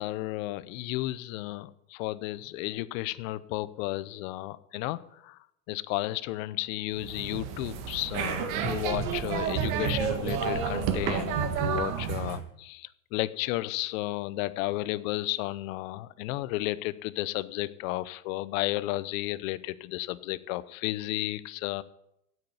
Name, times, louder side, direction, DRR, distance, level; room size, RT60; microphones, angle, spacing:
voice 1, 0.0-5.4 5.7-21.8, left 17 dB, 55° left, 16 dB, 0.8 m, -33 dB
sound 1, 7.0-12.4, right 7 dB, 55° right, 1.8 m, -30 dB
9.3 x 8.4 x 9.3 m, 0.80 s
hypercardioid pair, 115°, 50 cm